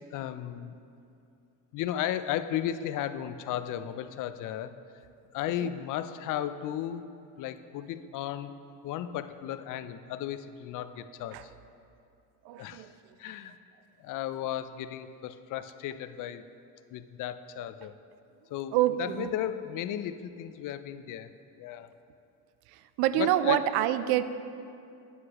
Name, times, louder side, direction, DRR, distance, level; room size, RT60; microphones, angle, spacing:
voice 1, 0.1-0.8 1.7-4.7 5.3-7.1 7.4-8.5 8.8-11.5 12.6-12.8 13.2-13.6 14.0-16.4 16.9-17.9 18.5-21.3 21.6-21.9 23.2-23.6, left 11 dB, 55° left, 11 dB, 0.5 m, -35 dB
voice 2, 12.4-12.9 18.7-19.3 22.7-24.2, right 12 dB, 75° right, 13 dB, 0.5 m, -27 dB
9.4 x 8.3 x 2.9 m, 2.5 s
cardioid pair, 110°, 38 cm